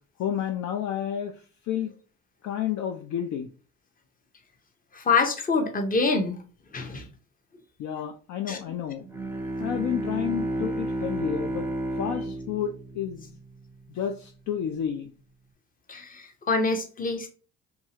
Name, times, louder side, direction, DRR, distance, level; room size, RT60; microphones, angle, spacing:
voice 1, 0.2-1.3 1.7-1.9 2.4-3.5 7.8-9.0 9.6-11.7 12.0-13.3 13.9-15.1, left 9 dB, 50° left, 5 dB, 0.4 m, -30 dB
voice 2, 4.9-6.4 6.7-7.1 8.5-8.6 15.9-17.3, left 4 dB, 20° left, 5 dB, 0.7 m, -26 dB
Bowed string instrument, 9.0-13.8, right 1 dB, 5° right, 0.5 m, -32 dB
2.6 x 2.4 x 2.8 m, 0.38 s
hypercardioid pair, 65°, 38 cm